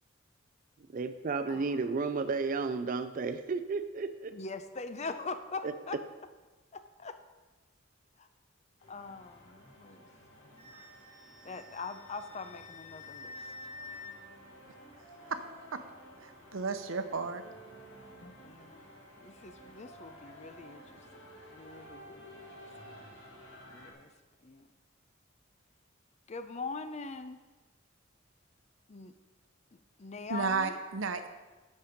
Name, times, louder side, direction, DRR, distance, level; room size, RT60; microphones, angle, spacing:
voice 1, 0.9-4.3 5.6-5.7, right 4 dB, 40° right, 9 dB, 0.4 m, -33 dB
voice 2, 1.5-1.8 4.3-6.0 6.7-7.2 8.2-8.3 8.9-10.1 10.4-10.9 11.4-13.5 18.2-18.9 19.2-22.4 23.7-24.1 24.4-24.7 26.3-27.4 28.9-29.1 29.7-30.8, left 4 dB, 35° left, 9 dB, 0.5 m, -43 dB
sound 1, 8.8-23.9, equal, 65° left, 2.0 m, -53 dB
Wind instrument woodwind instrument, 10.6-14.1, left 3 dB, 80° left, 3.1 m, -48 dB
voice 3, 16.2-17.4 30.3-31.3, right 4 dB, 75° right, 8 dB, 0.7 m, -33 dB
8.5 x 6.6 x 5.1 m, 1.2 s
head